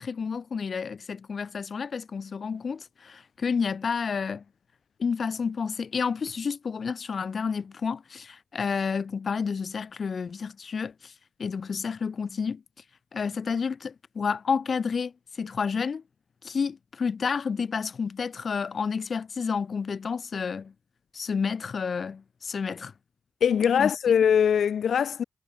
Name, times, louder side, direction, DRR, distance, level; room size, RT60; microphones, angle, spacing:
voice 1, 0.0-4.4 5.0-11.1 11.4-12.6 13.1-16.0 16.4-20.7 21.1-22.9 23.8-23.9, left 5 dB, 60° left, 3.4 m, -30 dB
voice 2, 23.4-25.2, left 8 dB, 85° left, 1.9 m, -22 dB
cardioid pair, 85°, 0 cm